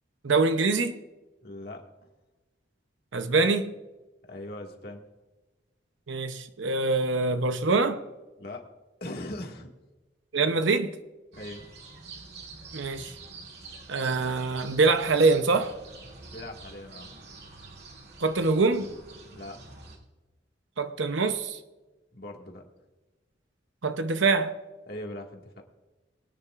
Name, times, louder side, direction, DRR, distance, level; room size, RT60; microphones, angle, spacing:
voice 1, 0.2-1.0 3.1-3.7 6.1-8.0 10.3-11.0 12.7-13.1 13.9-15.8 18.2-18.9 20.8-21.6 23.8-24.6, right 3 dB, 90° right, 0.8 m, -24 dB
voice 2, 1.4-1.8 4.2-5.0 8.4-8.7 9.0-9.7 11.3-11.6 16.3-17.1 19.3-19.6 22.1-22.6 24.9-25.6, left 1 dB, 55° left, 1.9 m, -40 dB
sound 1, 11.3-20.0, right 3 dB, 60° right, 2.6 m, -46 dB
23.0 x 9.8 x 2.5 m
head